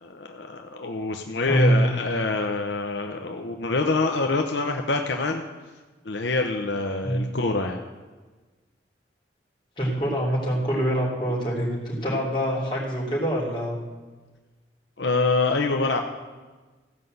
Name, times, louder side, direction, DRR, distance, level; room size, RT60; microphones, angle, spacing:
voice 1, 0.0-5.4 6.0-7.8 15.0-16.0, left 3 dB, 75° left, 3 dB, 0.9 m, -25 dB
voice 2, 1.5-1.9 7.0-7.2 9.8-13.8, equal, 25° left, -5 dB, 3.6 m, -24 dB
15.5 x 5.6 x 7.9 m, 1.3 s
head